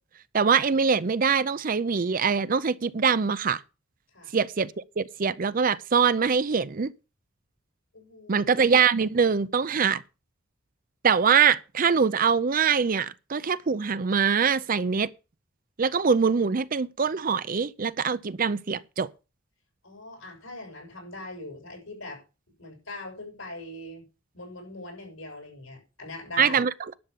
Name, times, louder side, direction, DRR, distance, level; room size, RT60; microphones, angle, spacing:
voice 1, 0.3-3.6 4.3-6.9 8.3-10.0 11.0-15.1 15.8-19.1 26.4-26.7, right 6 dB, 40° right, 0.5 m, -23 dB
voice 2, 7.9-8.5 19.8-22.2 22.6-24.1 24.3-26.6, left 2 dB, 80° left, 6.9 m, -41 dB
11.0 x 6.8 x 6.8 m
head